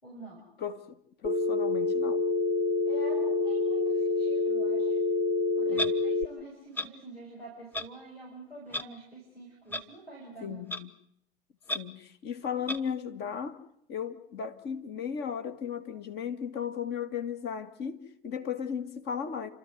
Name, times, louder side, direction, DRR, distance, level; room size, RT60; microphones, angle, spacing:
voice 1, 0.0-0.4 2.9-5.0 5.5-10.6, right 2 dB, 90° left, 6.9 m, -46 dB
voice 2, 0.6-2.2 5.7-5.9 10.4-10.9 11.7-13.6 13.9-19.5, left 7 dB, 35° left, 2.0 m, -36 dB
Telephone, 1.2-6.2, left 3 dB, 15° right, 1.2 m, -27 dB
Clock, 5.8-5.9 6.7-6.9 7.7-7.9 8.7-8.8 9.7-9.8 10.7-10.8 11.7-11.8 12.7-12.8, left 1 dB, 5° left, 1.0 m, -31 dB
29.5 x 13.5 x 9.4 m
figure-of-eight pair, 90°, 30 cm